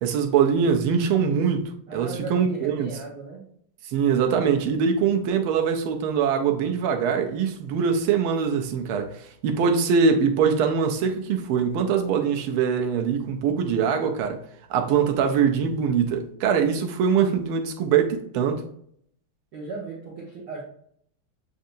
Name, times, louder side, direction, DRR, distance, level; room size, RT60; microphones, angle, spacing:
voice 1, 0.0-2.9 3.8-14.4 14.7-18.6, right 6 dB, 85° right, 1.5 m, -23 dB
voice 2, 1.9-3.5 14.9-15.4 19.5-20.6, right 3 dB, 55° right, 1.4 m, -37 dB
7.7 x 2.7 x 2.5 m
omnidirectional pair, 2.3 m